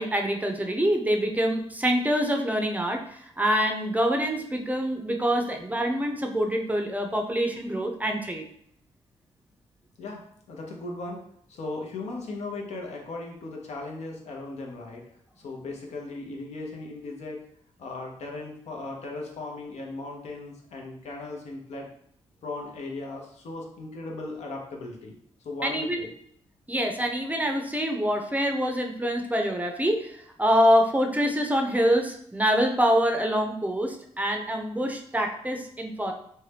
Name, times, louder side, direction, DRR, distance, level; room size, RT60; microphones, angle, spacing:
voice 1, 0.0-8.4 25.6-26.0 26.7-36.1, equal, 15° right, 3 dB, 0.5 m, -25 dB
voice 2, 10.0-11.2 11.5-15.0 15.4-17.4 17.8-21.9 22.4-26.1, left 2 dB, 75° left, 0 dB, 0.7 m, -37 dB
2.6 x 2.2 x 3.3 m, 0.66 s
cardioid pair, 65°, 12 cm